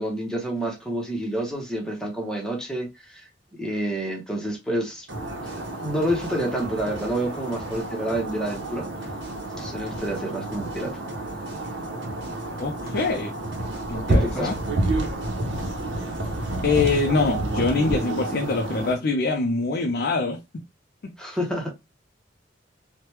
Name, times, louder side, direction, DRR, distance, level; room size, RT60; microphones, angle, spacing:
voice 1, 0.0-5.1 5.4-8.9 9.5-11.0 14.1-14.6 21.2-21.7, right 1 dB, 5° left, 0.7 m, -29 dB
sound 1, 5.1-15.9 16.1-17.1, right 1 dB, 65° right, 1.2 m, -44 dB
sound 2, 5.1-19.0, right 2 dB, 85° right, 0.7 m, -29 dB
voice 2, 12.6-13.3 13.9-14.5 16.6-20.4, left 3 dB, 55° left, 0.4 m, -24 dB
3.2 x 2.1 x 3.0 m
head